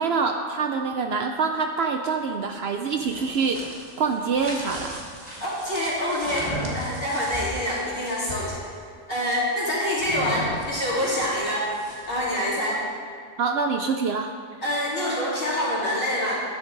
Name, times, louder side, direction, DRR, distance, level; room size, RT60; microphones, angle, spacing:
voice 1, 0.0-3.6 4.0-5.0 13.4-14.3, right 5 dB, 65° right, 5 dB, 0.7 m, -25 dB
sound 1, 2.8-8.6 10.0-12.3, right 1 dB, 30° right, 1.7 m, -36 dB
voice 2, 5.4-8.6 9.1-11.7 12.1-12.8 14.6-16.4, left 1 dB, 45° left, -7 dB, 3.1 m, -26 dB
11.0 x 9.6 x 3.9 m, 2.1 s
omnidirectional pair, 1.3 m